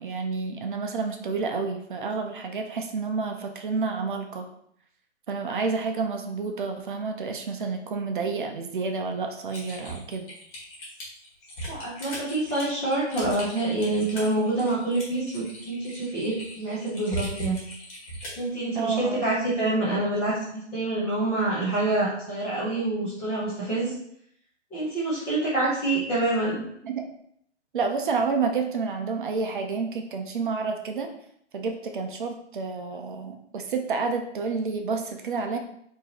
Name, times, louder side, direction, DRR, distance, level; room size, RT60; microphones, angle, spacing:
voice 1, 0.0-4.5 5.3-10.3 18.7-19.3 26.8-27.1 27.7-31.1 31.5-35.6, right 4 dB, 45° right, 4 dB, 0.6 m, -29 dB
Typing, 9.5-18.5, right 1 dB, 30° left, 1.6 m, -38 dB
voice 2, 11.7-17.6 18.4-23.9 24.7-26.6, right 2 dB, 5° left, -12 dB, 0.4 m, -26 dB
4.7 x 2.8 x 2.8 m, 0.70 s
figure-of-eight pair, 140°, 36 cm